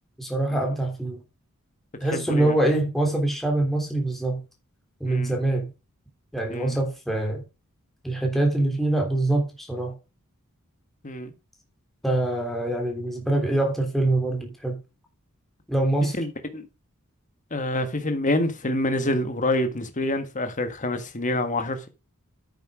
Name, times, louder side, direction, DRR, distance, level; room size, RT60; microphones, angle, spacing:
voice 1, 0.2-1.2 2.0-4.4 5.0-5.7 6.3-7.4 8.0-9.9 12.0-14.8 15.7-16.1, right 2 dB, ahead, 3.3 m, -24 dB
voice 2, 2.1-2.5 5.0-5.3 6.5-6.8 11.0-11.3 16.2-16.7 17.5-21.9, left 1 dB, 35° left, 1.6 m, -27 dB
9.2 x 7.9 x 4.9 m
head